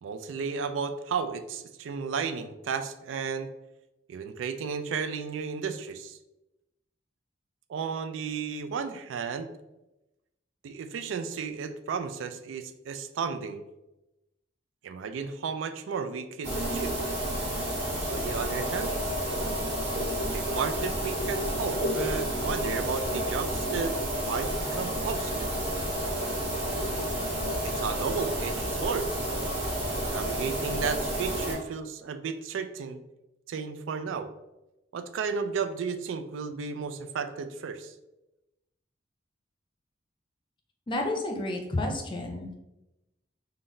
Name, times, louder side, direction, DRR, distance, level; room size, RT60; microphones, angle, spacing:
voice 1, 0.0-3.5 4.1-6.2 7.7-9.5 10.6-13.6 14.8-17.0 18.1-19.0 20.3-23.9 24.2-25.5 27.6-29.1 30.0-33.0 33.5-34.3 34.9-37.9, right 5 dB, 85° right, 9 dB, 0.3 m, -33 dB
sound 1, 16.4-31.5, equal, 65° right, 1.3 m, -30 dB
voice 2, 40.9-42.5, left 2 dB, 25° left, 2 dB, 0.5 m, -30 dB
3.9 x 2.1 x 3.8 m, 0.95 s
head